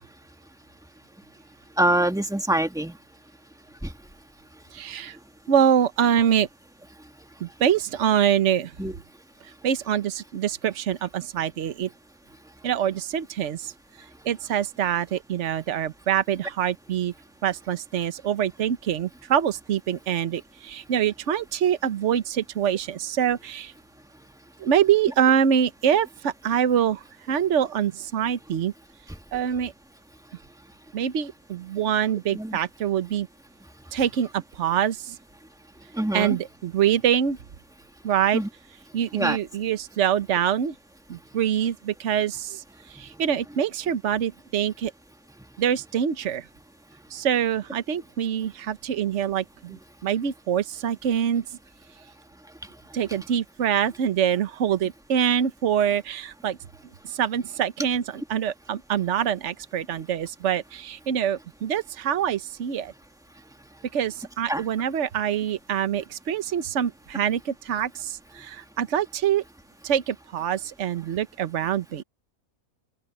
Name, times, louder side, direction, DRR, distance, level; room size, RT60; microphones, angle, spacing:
voice 1, 1.8-3.0 3.8-3.9 8.8-8.9 32.3-32.6 36.0-36.4 38.3-38.5 39.1-39.4 64.5-64.6, right 1 dB, ahead, 1.7 m, -24 dB
voice 2, 4.7-5.2 5.5-6.5 7.4-8.7 9.6-11.9 12.6-13.7 14.2-17.1 17.4-23.7 24.6-28.7 29.3-29.7 30.9-33.3 33.9-35.2 36.1-37.4 38.0-38.4 38.9-40.7 41.1-42.6 42.9-44.9 45.6-46.4 47.1-51.4 52.9-56.6 57.0-62.9 63.9-69.4 69.8-72.0, right 9 dB, 55° right, 1.2 m, -25 dB
open air
omnidirectional pair, 1.5 m